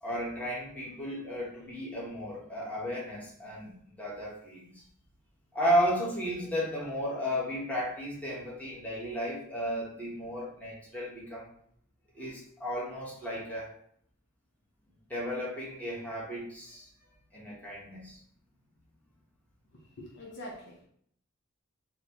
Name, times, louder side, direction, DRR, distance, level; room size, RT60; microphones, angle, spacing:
voice 1, 0.0-4.8 5.5-11.5 12.1-13.7 15.1-16.9 17.3-18.2, equal, 5° left, -7 dB, 1.0 m, -34 dB
voice 2, 19.7-20.9, left 1 dB, 55° left, -2 dB, 0.7 m, -45 dB
3.9 x 2.1 x 2.8 m, 0.64 s
head